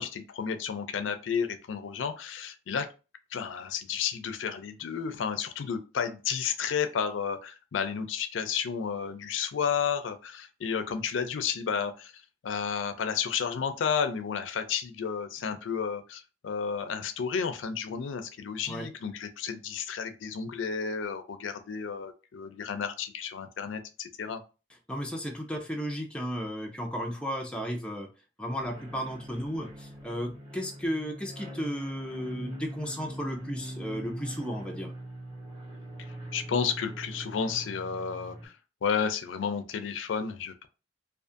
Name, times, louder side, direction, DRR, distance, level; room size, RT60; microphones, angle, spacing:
voice 1, 0.0-2.9 3.3-12.1 12.4-24.4 36.3-38.5 38.8-40.7, left 6 dB, 80° left, 9 dB, 0.4 m, -32 dB
voice 2, 24.9-28.1 28.4-34.9, equal, 5° left, 2 dB, 0.3 m, -34 dB
sound 1, 28.6-38.5, right 1 dB, 25° right, 0.8 m, -42 dB
2.5 x 2.4 x 2.4 m, 0.32 s
head